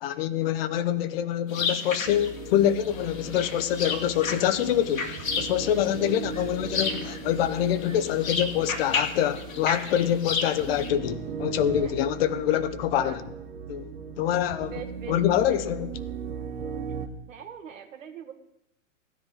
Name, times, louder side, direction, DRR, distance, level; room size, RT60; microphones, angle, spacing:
voice 1, 0.0-13.2 13.7-13.9 14.2-14.7 15.1-16.0, left 11 dB, 50° left, 0.9 m, -25 dB
sound 1, 1.5-10.9, left 4 dB, 85° left, 2.0 m, -33 dB
sound 2, 2.0-17.1, right 6 dB, 50° right, 1.4 m, -38 dB
sound 3, 2.9-12.8, left 1 dB, 30° left, 1.8 m, -48 dB
voice 2, 14.6-15.2 17.3-18.3, right 8 dB, 75° right, 1.7 m, -41 dB
15.0 x 10.5 x 3.9 m
hypercardioid pair, 120°, 39 cm